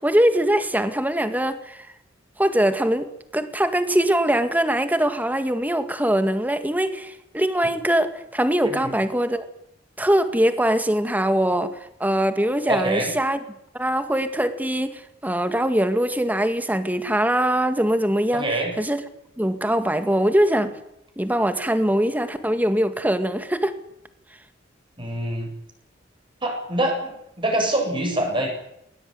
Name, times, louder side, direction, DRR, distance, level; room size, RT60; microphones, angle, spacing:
voice 1, 0.0-1.9 2.4-9.5 10.0-11.7 12.0-13.4 13.7-18.4 18.8-19.0 19.4-20.7 21.2-23.8, right 1 dB, 10° right, 9 dB, 2.0 m, -22 dB
voice 2, 12.7-13.1 18.3-18.7 25.0-25.5 26.4-28.5, right 1 dB, 25° right, 2 dB, 7.7 m, -25 dB
20.5 x 19.5 x 9.6 m, 0.80 s
head